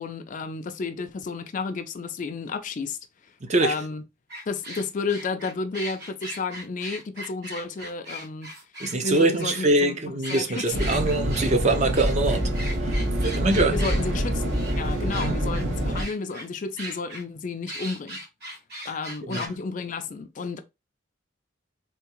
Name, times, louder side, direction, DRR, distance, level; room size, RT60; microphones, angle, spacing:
voice 1, 0.0-3.0 3.6-4.0 4.5-8.5 9.0-10.9 13.7-18.2 18.9-20.6, left 4 dB, 40° left, 0.4 m, -32 dB
voice 2, 3.4-3.7 8.8-12.5 12.8-13.0 13.2-13.8 15.2-15.3 19.3-19.4, right 2 dB, 35° right, 0.6 m, -23 dB
sound 1, 4.3-9.6 10.2-14.0 14.5-14.7 15.1-15.6 15.9-16.5 16.8-17.2 17.7-19.5, right 1 dB, 50° right, 1.7 m, -38 dB
sound 2, 10.7-16.0, equal, 70° right, 1.1 m, -26 dB
3.5 x 2.7 x 2.9 m
head